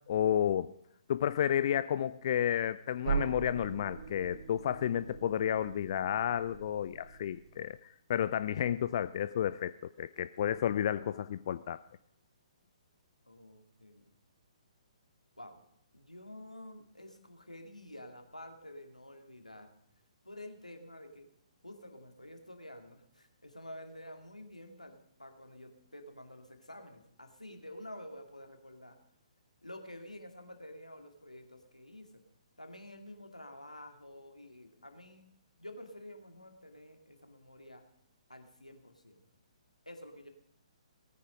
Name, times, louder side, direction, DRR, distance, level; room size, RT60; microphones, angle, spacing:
voice 1, 0.1-0.7 1.1-9.7 10.0-11.8, left 10 dB, 45° left, 14 dB, 0.4 m, -31 dB
sound 1, 3.0-7.7, right 6 dB, 55° right, 1.5 m, -40 dB
voice 2, 13.3-14.1 15.4-15.6 15.9-19.8 20.2-21.3 21.6-29.0 29.6-32.2 32.6-35.3 35.6-37.9 38.3-39.2 39.9-40.3, left 1 dB, 85° left, 5 dB, 2.1 m, -49 dB
18.5 x 9.3 x 5.1 m, 0.75 s
figure-of-eight pair, 125°, 4 cm